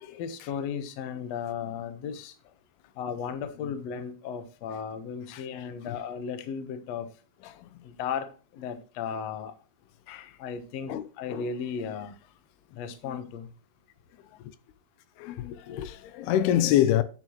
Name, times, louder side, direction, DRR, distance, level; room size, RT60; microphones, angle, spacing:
voice 1, 0.2-2.3 3.0-7.1 7.8-8.3 8.5-9.5 10.4-12.1 12.7-13.5, left 7 dB, 65° left, 1.7 m, -35 dB
voice 2, 5.3-6.0 7.4-7.8 10.1-10.4 10.9-11.5 13.0-13.2 15.2-17.0, left 12 dB, 80° left, 2.7 m, -28 dB
9.9 x 9.4 x 3.1 m
omnidirectional pair, 4.6 m